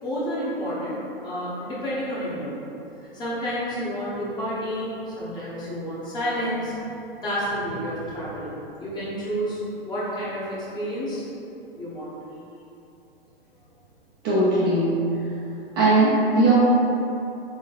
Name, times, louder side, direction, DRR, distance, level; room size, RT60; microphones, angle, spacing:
voice 1, 0.0-2.6 3.1-6.7 7.2-8.5 8.8-11.2 11.7-12.1, equal, 15° left, -9 dB, 0.8 m, -30 dB
voice 2, 14.2-15.0 15.7-16.5, right 2 dB, 25° right, -8 dB, 0.4 m, -19 dB
3.5 x 3.3 x 2.4 m, 2.8 s
figure-of-eight pair, 110°, 31 cm